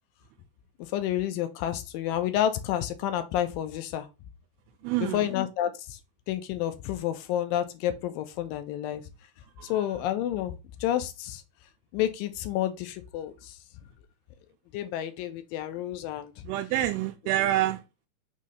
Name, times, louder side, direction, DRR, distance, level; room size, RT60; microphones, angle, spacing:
voice 1, 0.9-4.1 5.1-6.0 6.3-9.0 9.7-10.5 10.8-11.4 11.9-13.6 14.7-16.3, left 11 dB, 80° left, 2.1 m, -30 dB
voice 2, 4.8-5.3 9.6-9.8 16.4-17.8, right 14 dB, 85° right, 2.5 m, -27 dB
6.3 x 2.8 x 5.5 m
omnidirectional pair, 4.5 m